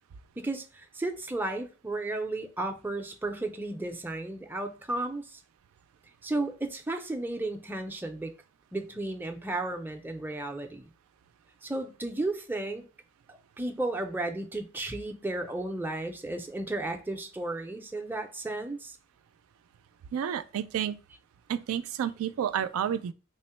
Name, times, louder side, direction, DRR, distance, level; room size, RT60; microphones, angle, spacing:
voice 1, 0.4-5.4 6.2-8.3 8.7-10.9 11.6-12.9 13.3-19.0, right 2 dB, 10° right, 0.4 m, -34 dB
voice 2, 20.1-21.0 21.5-23.1, right 9 dB, 85° right, 0.3 m, -30 dB
3.6 x 2.0 x 4.2 m
head